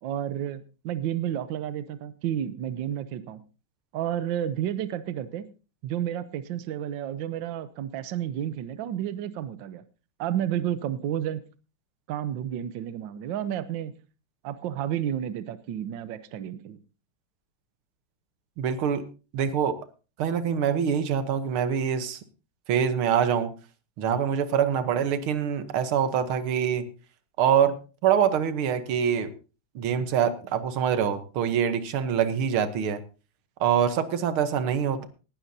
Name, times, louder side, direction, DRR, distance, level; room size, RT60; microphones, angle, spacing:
voice 1, 0.0-3.4 3.9-5.5 5.8-9.8 10.2-11.5 12.1-14.0 14.4-16.8, right 10 dB, 70° right, 13 dB, 1.4 m, -31 dB
voice 2, 18.6-19.0 19.3-19.8 20.2-22.2 22.7-23.5 24.0-26.9 27.4-27.8 28.0-29.3 29.8-33.0 33.6-35.1, right 8 dB, 90° right, 11 dB, 2.0 m, -25 dB
19.0 x 12.0 x 2.7 m, 0.32 s
omnidirectional pair, 2.3 m